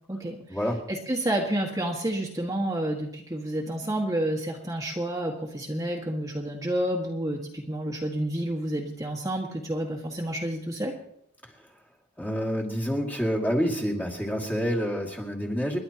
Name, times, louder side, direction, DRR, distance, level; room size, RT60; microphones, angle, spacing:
voice 1, 0.1-0.6 0.9-11.0, right 1 dB, 15° right, -2 dB, 1.8 m, -29 dB
voice 2, 12.2-15.8, equal, 10° left, -2 dB, 2.3 m, -28 dB
29.5 x 11.5 x 2.9 m, 0.71 s
head